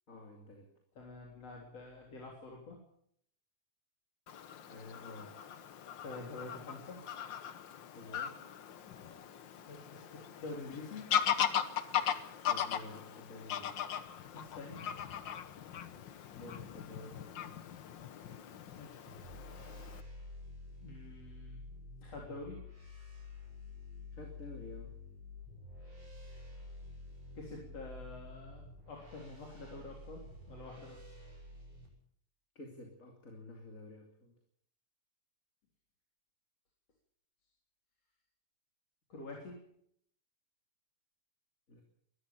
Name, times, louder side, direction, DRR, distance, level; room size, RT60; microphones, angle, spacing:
voice 1, 0.1-0.7 4.7-5.4 7.9-8.4 12.5-13.9 16.3-17.7 24.1-25.0 32.5-34.3 41.7-41.8, left 2 dB, 25° left, 2 dB, 3.0 m, -50 dB
voice 2, 1.0-2.8 5.9-7.0 9.6-11.1 14.3-14.8 18.8-19.0 20.8-21.7 22.0-22.6 27.3-31.1 39.1-39.6, left 3 dB, 50° left, -1 dB, 4.6 m, -47 dB
Fowl / Bird vocalization bird call bird song, 4.3-20.0, left 9 dB, 80° left, 1.0 m, -39 dB
sound 1, 19.0-31.9, left 2 dB, 45° right, 8.7 m, -50 dB
21.5 x 14.0 x 8.8 m, 0.69 s
omnidirectional pair, 3.8 m